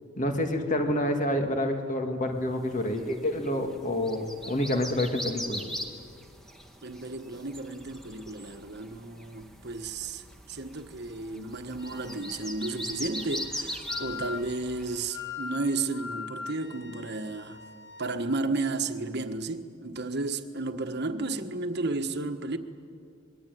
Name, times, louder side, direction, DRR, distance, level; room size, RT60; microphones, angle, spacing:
voice 1, 0.2-5.6, left 1 dB, 40° left, 2.4 m, -28 dB
sound 1, 2.7-15.1, equal, ahead, 1.8 m, -40 dB
voice 2, 6.8-17.6 18.0-22.6, right 3 dB, 55° right, 1.5 m, -33 dB
Wind instrument woodwind instrument, 11.8-18.2, left 5 dB, 55° left, 1.8 m, -42 dB
25.5 x 22.0 x 9.4 m
head